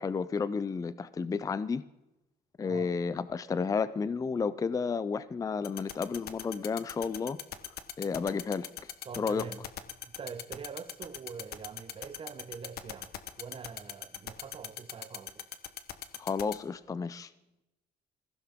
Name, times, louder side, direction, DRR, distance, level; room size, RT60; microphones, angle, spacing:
voice 1, 0.0-1.8 2.6-7.4 8.0-8.9 9.2-9.5 16.2-17.3, left 5 dB, 20° left, 0.5 m, -32 dB
sound 1, 5.6-16.5, left 12 dB, 70° left, 1.1 m, -39 dB
voice 2, 9.0-9.7 10.0-13.1 13.4-15.5, right 6 dB, 35° right, 1.0 m, -44 dB
21.0 x 15.5 x 3.7 m
cardioid pair, 110°, 17 cm